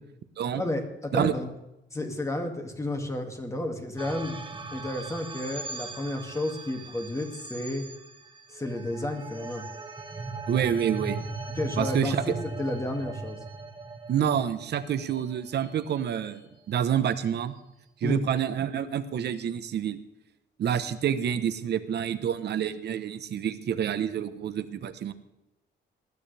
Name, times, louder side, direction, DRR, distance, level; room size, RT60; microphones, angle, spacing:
voice 1, 0.5-1.5 1.9-7.8 8.5-9.7 11.5-13.4 18.0-18.2, left 1 dB, 15° left, 3 dB, 2.4 m, -32 dB
sound 1, 4.0-16.4, right 3 dB, 25° right, 1.6 m, -39 dB
voice 2, 10.5-11.2 11.8-12.2 14.1-17.5 18.0-20.0 20.6-25.1, right 9 dB, 65° right, 11 dB, 1.2 m, -28 dB
20.0 x 13.0 x 3.5 m, 0.90 s
cardioid pair, 125°, 19 cm